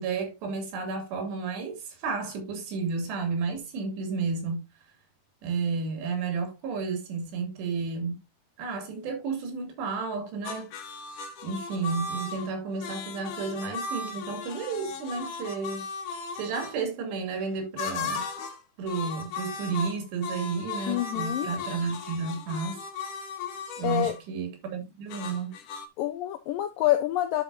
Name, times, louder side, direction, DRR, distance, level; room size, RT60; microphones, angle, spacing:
voice 1, 0.0-4.7 5.4-8.2 8.6-10.7 11.4-15.9 16.3-18.2 18.8-22.8 23.8-25.5, right 4 dB, 80° right, 4.7 m, -32 dB
sound 1, 10.4-16.7 17.8-18.6 18.9-24.2 25.1-25.9, left 4 dB, 65° left, 2.3 m, -36 dB
voice 2, 20.9-21.5 23.8-24.1 26.0-27.4, left 13 dB, 85° left, 2.0 m, -27 dB
11.5 x 6.1 x 2.6 m
omnidirectional pair, 4.8 m